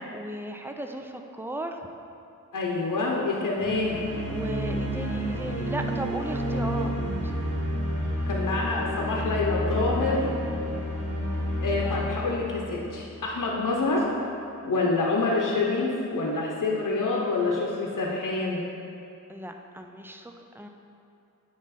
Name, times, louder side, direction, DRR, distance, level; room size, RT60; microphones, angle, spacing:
voice 1, 0.1-1.8 4.3-7.3 11.8-12.0 19.3-20.7, right 1 dB, 5° right, 4 dB, 0.4 m, -36 dB
voice 2, 2.5-4.0 8.3-10.3 11.6-14.1 14.6-18.7, left 3 dB, 70° left, -2 dB, 0.8 m, -27 dB
sound 1, 3.6-13.6, equal, 50° right, 1.1 m, -30 dB
9.4 x 3.2 x 4.1 m, 2.7 s
wide cardioid pair, 65°, 32 cm